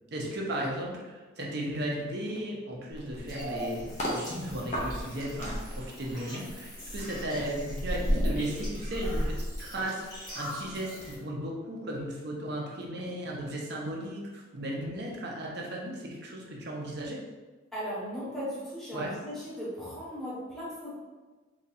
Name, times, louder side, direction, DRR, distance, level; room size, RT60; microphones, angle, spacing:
voice 1, 0.1-10.1 10.3-17.2 18.9-19.1, right 1 dB, 50° right, -2 dB, 0.7 m, -35 dB
sound 1, 2.9-4.2 4.7-10.3 10.6-10.9, equal, 35° left, 0.7 m, -34 dB
sound 2, 3.3-11.1, equal, 20° left, 1.0 m, -41 dB
voice 2, 17.7-21.0, equal, ahead, -11 dB, 1.2 m, -37 dB
4.1 x 2.9 x 2.6 m, 1.3 s
head